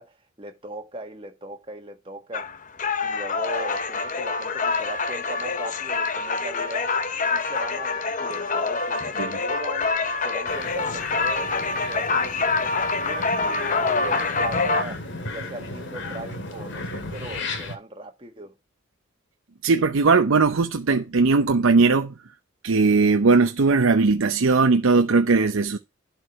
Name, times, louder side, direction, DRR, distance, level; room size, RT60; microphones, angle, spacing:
voice 1, 0.0-2.5 3.0-7.0 7.3-9.9 10.2-18.5, right 2 dB, 25° right, 1.6 m, -39 dB
sound 1, 2.3-14.8, left 4 dB, 40° left, 0.9 m, -26 dB
sound 2, 10.5-17.8, left 2 dB, 65° left, 2.0 m, -35 dB
voice 2, 19.6-22.1 22.6-25.8, right 4 dB, 75° right, 0.6 m, -19 dB
11.5 x 4.7 x 4.6 m
head